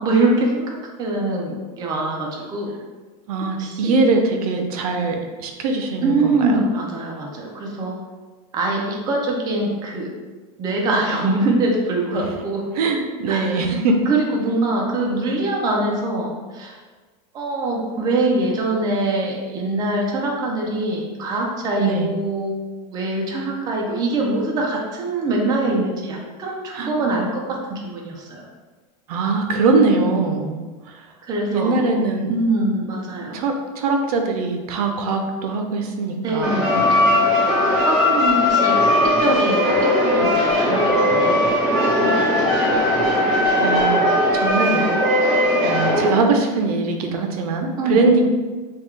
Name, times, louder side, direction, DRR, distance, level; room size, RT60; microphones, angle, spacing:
voice 1, 0.0-2.7 3.6-4.0 6.0-8.0 8.5-10.1 10.6-12.6 13.3-13.7 14.0-16.8 17.3-22.6 22.9-28.5 31.2-31.9 32.3-33.4 36.2-37.2 37.9-41.6 42.0-42.8 47.8-48.1, right 2 dB, 20° right, -1 dB, 0.4 m, -23 dB
voice 2, 3.3-6.6 12.8-14.0 21.8-22.1 26.7-26.9 29.1-30.6 30.9-31.0 31.5-32.3 33.3-36.6 43.6-44.1 44.3-44.9 45.6-48.2, right 3 dB, 85° right, 4 dB, 0.5 m, -21 dB
sound 1, 36.4-46.1, left 1 dB, 5° right, 1.2 m, -18 dB
3.4 x 2.3 x 3.2 m, 1.3 s
supercardioid pair, 160°, 19 cm